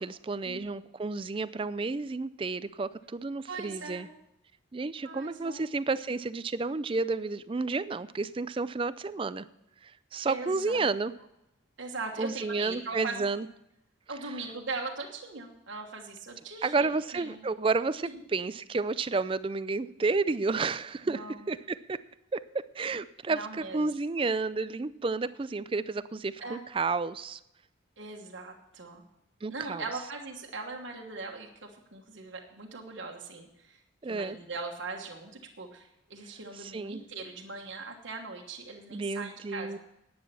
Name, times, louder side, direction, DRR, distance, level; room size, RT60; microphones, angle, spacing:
voice 1, 0.0-4.1 4.7-9.4 9.8-11.1 12.2-13.5 16.6-21.2 21.5-22.0 22.3-27.4 29.4-29.8 34.0-34.4 36.6-37.0 38.9-39.8, right 3 dB, 25° right, 16 dB, 0.4 m, -31 dB
voice 2, 3.5-4.1 5.0-5.7 10.3-10.9 11.8-13.2 14.1-17.5 18.0-18.2 21.1-21.5 23.3-23.9 24.2-24.3 26.4-26.6 28.0-29.0 29.5-33.8 34.0-39.8, right 3 dB, 75° right, 1 dB, 1.4 m, -40 dB
11.0 x 9.5 x 7.0 m, 0.85 s
head